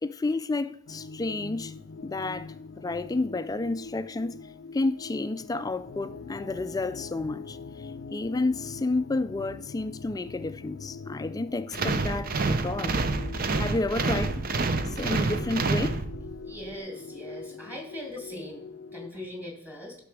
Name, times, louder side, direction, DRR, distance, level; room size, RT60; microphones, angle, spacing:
voice 1, 0.0-1.7 2.0-2.5 2.8-4.3 4.7-13.0 13.6-14.4 14.9-16.0, left 2 dB, 20° left, 0.4 m, -30 dB
sound 1, 0.9-19.1, left 4 dB, 80° left, 0.5 m, -43 dB
sound 2, 11.7-16.5, right 3 dB, 45° right, 0.6 m, -28 dB
voice 2, 16.5-20.0, left 1 dB, 10° right, 2.2 m, -40 dB
12.0 x 6.0 x 4.8 m
head